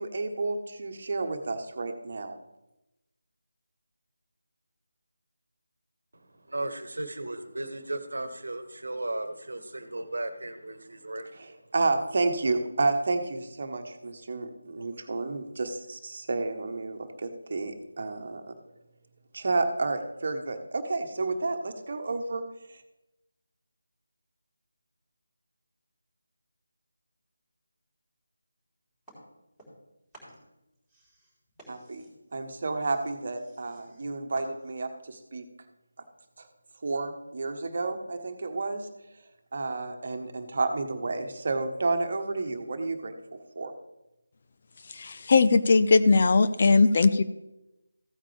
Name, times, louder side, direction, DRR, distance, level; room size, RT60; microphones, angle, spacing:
voice 1, 0.0-2.4 11.4-18.6 19.3-22.8 31.7-35.4 36.4-36.5 36.8-38.9 39.5-43.1 43.5-43.7, right 3 dB, 45° right, 6 dB, 1.2 m, -31 dB
voice 2, 6.1-11.5, right 2 dB, 65° right, 11 dB, 1.2 m, -36 dB
sound 1, 29.1-29.9 30.1-35.0, right 1 dB, ahead, 3.9 m, -54 dB
voice 3, 44.9-47.2, left 4 dB, 40° left, 11 dB, 0.5 m, -20 dB
15.0 x 8.8 x 3.4 m, 0.94 s
figure-of-eight pair, 160°, 0 cm